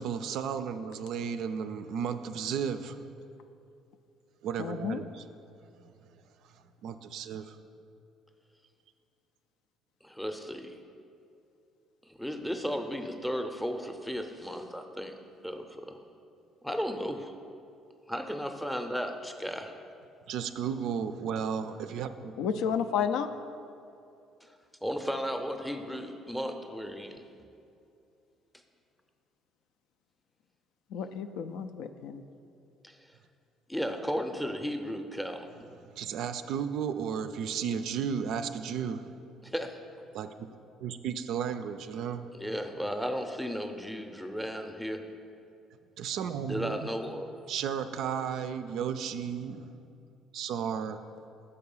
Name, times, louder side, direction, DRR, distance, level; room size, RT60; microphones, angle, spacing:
voice 1, 0.0-3.1 4.4-5.2 6.8-7.6 20.3-22.3 35.9-39.2 40.1-40.3 40.8-42.3 46.0-46.9 47.5-49.7 50.3-51.0, right 7 dB, 70° right, 10 dB, 0.3 m, -34 dB
voice 2, 4.6-5.0 22.4-23.3 30.9-32.2, left 7 dB, 80° left, 9 dB, 0.3 m, -31 dB
voice 3, 10.0-10.8 12.1-15.1 15.4-16.0 16.6-17.3 18.1-19.7 24.4-24.5 24.8-27.2 32.8-33.1 33.7-35.5 39.4-39.8 42.3-45.0 46.5-47.5, equal, 5° left, 5 dB, 0.6 m, -35 dB
6.7 x 4.8 x 5.5 m, 2.6 s
cardioid pair, 105°, 0 cm